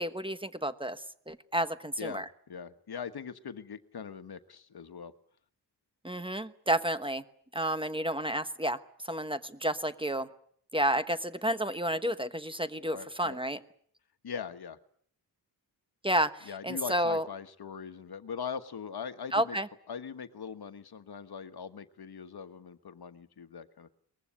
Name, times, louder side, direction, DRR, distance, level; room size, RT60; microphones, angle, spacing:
voice 1, 0.0-2.2 6.0-7.2 7.5-8.8 9.0-10.3 10.7-13.6 16.0-17.2 19.3-19.7, right 1 dB, 10° right, 11 dB, 1.1 m, -31 dB
voice 2, 2.0-5.1 12.9-13.4 14.2-14.8 16.4-19.6 19.9-23.9, left 6 dB, 60° left, 11 dB, 1.4 m, -41 dB
23.0 x 20.5 x 8.5 m, 0.62 s
wide cardioid pair, 135°, 42 cm